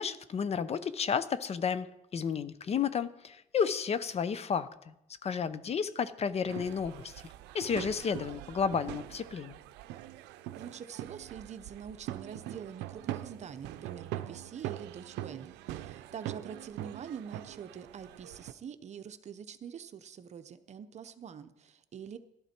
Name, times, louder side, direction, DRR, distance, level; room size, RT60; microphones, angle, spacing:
voice 1, 0.0-4.7 5.2-7.2 7.5-9.6, left 6 dB, 40° left, 15 dB, 0.6 m, -32 dB
sound 1, 6.5-18.5, right 14 dB, 90° right, 0.6 m, -43 dB
voice 2, 10.6-22.2, right 7 dB, 40° right, 10 dB, 0.8 m, -45 dB
12.0 x 12.0 x 4.4 m, 0.87 s
cardioid pair, 110°, 17 cm